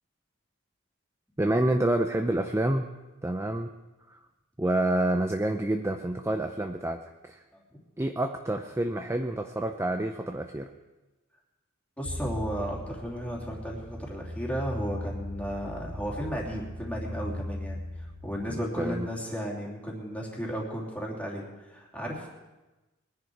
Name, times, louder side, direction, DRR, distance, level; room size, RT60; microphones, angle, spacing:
voice 1, 1.4-2.9 3.2-3.7 4.1-4.2 4.6-7.4 8.0-10.7 18.5-19.1, right 1 dB, 15° right, 6 dB, 0.5 m, -28 dB
voice 2, 12.0-22.3, equal, 5° left, -3 dB, 3.0 m, -34 dB
sound 1, 12.0-18.6, left 1 dB, 70° right, 2.3 m, -38 dB
22.0 x 10.5 x 4.6 m, 1.1 s
head